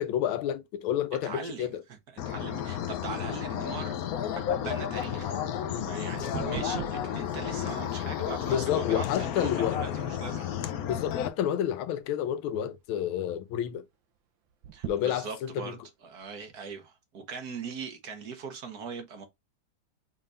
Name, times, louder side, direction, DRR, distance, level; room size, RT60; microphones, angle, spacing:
voice 1, 0.0-1.8 5.7-5.9 8.5-9.8 10.9-13.9 14.9-15.8, left 10 dB, 90° left, 1.5 m, -30 dB
voice 2, 1.2-4.0 4.4-5.4 5.8-10.5 14.7-15.8 16.0-19.3, right 5 dB, 55° right, 1.3 m, -40 dB
sound 1, 2.2-11.3, left 9 dB, 70° left, 0.8 m, -32 dB
sound 2, 3.9-8.3 8.9-9.0 9.7-10.0 10.3-10.9 11.5-12.2 12.5-12.6 12.9-13.0 14.5-15.6 16.2-16.3, right 10 dB, 70° right, 1.5 m, -43 dB
5.4 x 3.7 x 2.5 m
omnidirectional pair, 2.2 m